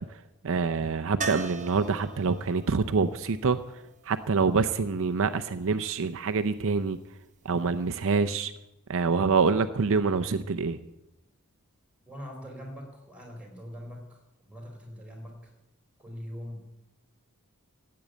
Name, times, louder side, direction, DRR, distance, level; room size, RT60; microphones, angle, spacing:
voice 1, 0.4-3.6 4.1-7.0 7.4-8.5 8.9-10.8, right 4 dB, 65° right, 9 dB, 0.6 m, -26 dB
sound 1, 1.2-5.1 7.7-7.8 8.1-8.2, right 4 dB, 35° right, 1.0 m, -40 dB
voice 2, 12.1-15.5 16.0-16.6, equal, 5° right, 1 dB, 4.6 m, -42 dB
15.5 x 8.7 x 8.2 m, 0.91 s
head